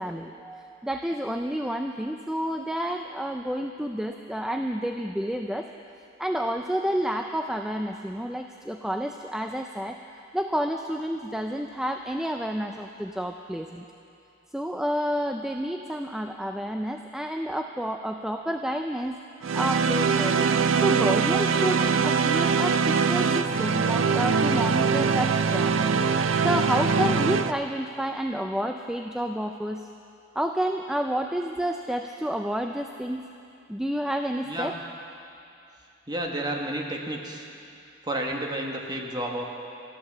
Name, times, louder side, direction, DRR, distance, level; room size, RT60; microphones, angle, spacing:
voice 1, 0.0-5.7 6.2-10.0 10.3-13.8 14.5-19.2 19.5-20.5 20.8-25.8 26.4-29.9 30.4-33.2 33.7-34.7, equal, 5° right, 4 dB, 0.3 m, -29 dB
sound 1, 19.4-27.5, right 5 dB, 75° right, 0.5 m, -23 dB
voice 2, 34.4-34.8 36.1-37.5 38.0-39.4, right 1 dB, 20° right, 1 dB, 1.3 m, -31 dB
12.5 x 12.0 x 7.2 m, 2.6 s
head